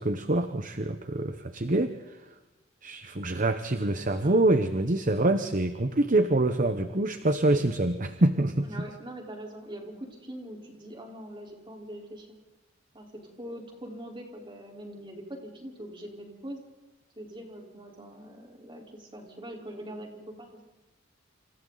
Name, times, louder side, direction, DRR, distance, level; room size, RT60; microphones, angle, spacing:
voice 1, 0.0-2.2 2.8-8.7, right 2 dB, 40° right, 8 dB, 1.0 m, -25 dB
voice 2, 8.6-12.3 12.9-16.6 17.2-20.6, right 1 dB, 25° right, 0 dB, 4.3 m, -43 dB
29.0 x 27.5 x 4.1 m, 1.1 s
head